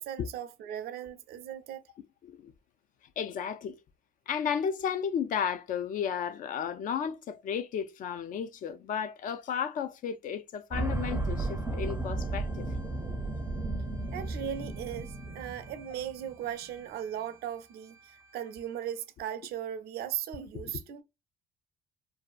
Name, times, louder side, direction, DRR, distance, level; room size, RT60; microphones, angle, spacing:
voice 1, 0.0-1.8 14.1-21.0, right 10 dB, 70° right, 0.5 m, -38 dB
voice 2, 3.2-3.8 4.3-12.7 20.6-20.7, left 7 dB, 50° left, 0.4 m, -33 dB
sound 1, 10.7-16.9 17.2-17.3, right 2 dB, 15° right, 0.5 m, -34 dB
2.6 x 2.2 x 2.3 m
cardioid pair, 110°, 17 cm